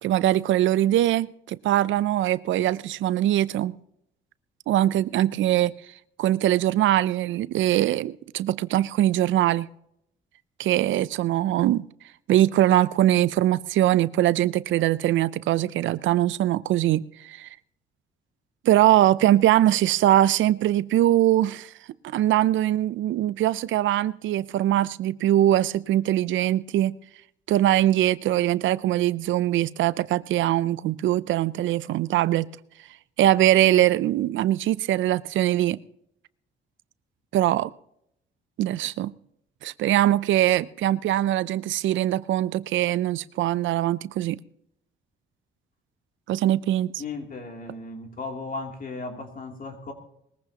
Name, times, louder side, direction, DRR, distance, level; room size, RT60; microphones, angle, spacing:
voice 1, 0.0-3.7 4.7-5.7 6.2-9.7 10.6-11.9 12.3-17.5 18.6-21.7 22.0-27.0 27.5-32.5 33.2-35.8 37.3-37.7 38.6-39.1 39.6-44.4 46.3-46.9, right 13 dB, 75° right, 0.5 m, -22 dB
voice 2, 47.0-49.9, left 3 dB, 45° left, 2.9 m, -36 dB
21.0 x 15.0 x 2.9 m
cardioid pair, 90°, 20 cm